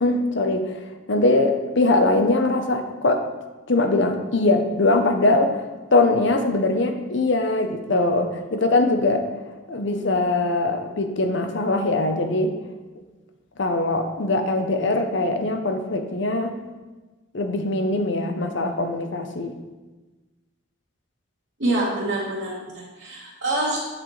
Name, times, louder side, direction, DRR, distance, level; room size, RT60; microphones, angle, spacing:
voice 1, 0.0-3.2 3.7-5.6 5.9-9.3 9.7-12.5 13.6-16.6 17.3-19.6, left 2 dB, 55° left, 6 dB, 0.7 m, -22 dB
voice 2, 21.6-23.8, right 2 dB, 50° right, -7 dB, 1.5 m, -26 dB
7.8 x 7.3 x 3.2 m, 1.2 s
head